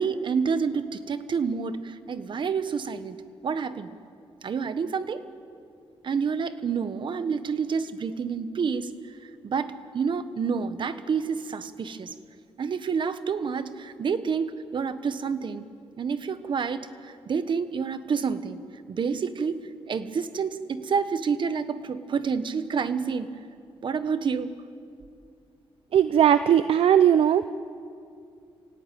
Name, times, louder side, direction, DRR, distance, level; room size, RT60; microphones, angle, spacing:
voice 1, 0.0-3.2 3.4-3.9 4.4-5.3 6.0-12.1 12.6-15.7 16.0-18.6 18.9-23.4 23.8-24.6, right 6 dB, 55° right, 12 dB, 1.2 m, -29 dB
voice 2, 25.9-27.5, right 9 dB, 70° right, 12 dB, 0.6 m, -19 dB
27.0 x 18.0 x 9.1 m, 2.4 s
cardioid pair, 100°, 10 cm